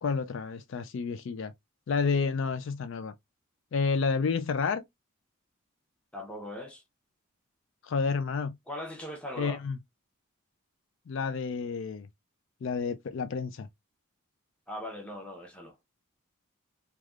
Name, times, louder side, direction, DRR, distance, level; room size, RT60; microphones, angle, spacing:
voice 1, 0.0-1.5 1.9-3.1 3.7-4.8 7.8-8.5 9.4-9.8 11.1-12.1 12.6-13.7, left 5 dB, 60° left, 0.4 m, -30 dB
voice 2, 6.1-6.8 8.7-9.6 14.7-15.7, left 1 dB, 5° left, 0.8 m, -39 dB
3.3 x 2.3 x 2.3 m
head